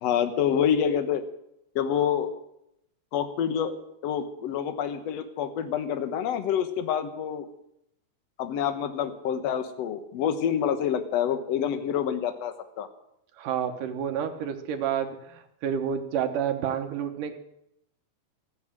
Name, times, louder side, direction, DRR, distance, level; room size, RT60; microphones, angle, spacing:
voice 1, 0.0-1.2 1.8-2.3 3.1-7.5 8.4-12.9, left 8 dB, 65° left, 9 dB, 1.7 m, -27 dB
voice 2, 13.4-17.4, right 8 dB, 70° right, 6 dB, 2.6 m, -29 dB
14.5 x 9.8 x 8.8 m, 0.81 s
omnidirectional pair, 4.3 m